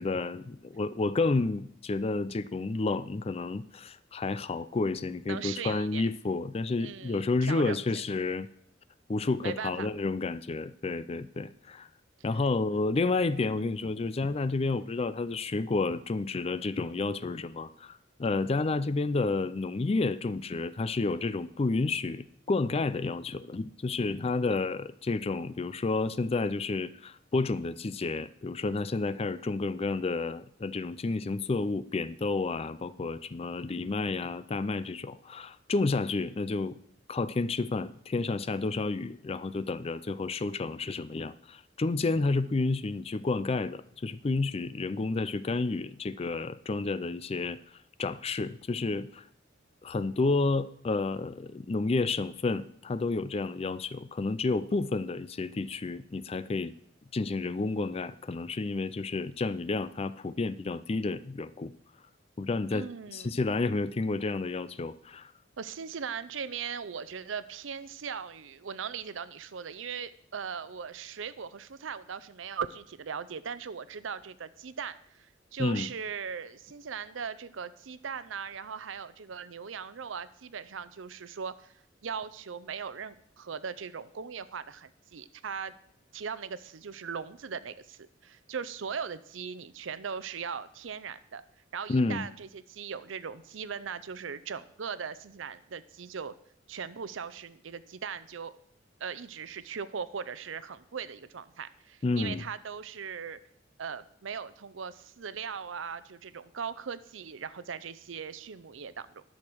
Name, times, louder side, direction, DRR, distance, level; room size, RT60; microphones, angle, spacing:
voice 1, 0.0-8.5 9.1-11.9 12.2-36.8 37.1-47.6 48.0-49.2 49.8-56.7 57.1-61.7 62.4-65.3 75.6-75.9 91.9-92.3 102.0-102.4, left 3 dB, 30° left, 15 dB, 0.4 m, -30 dB
voice 2, 5.3-6.0 6.8-7.8 9.4-9.9 62.7-63.5 65.6-81.7 82.0-85.7 86.1-91.4 91.7-96.3 96.7-98.5 99.0-103.4 103.8-109.2, right 6 dB, 85° right, 14 dB, 0.6 m, -39 dB
12.0 x 6.5 x 6.1 m, 0.68 s
head